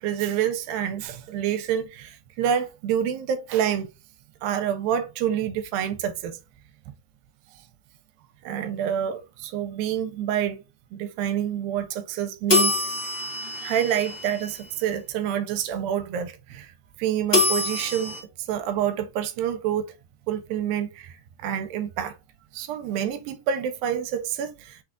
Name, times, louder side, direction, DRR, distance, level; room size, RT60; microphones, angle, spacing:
voice 1, 0.0-3.9 4.4-6.4 8.4-10.6 10.9-12.9 13.6-18.2 18.5-19.9 20.3-22.2 22.5-24.8, right 9 dB, 85° right, 2.3 m, -27 dB
sound 1, 12.5-14.7 17.3-18.2, left 2 dB, 40° left, 0.8 m, -25 dB
6.0 x 2.3 x 3.6 m
omnidirectional pair, 4.1 m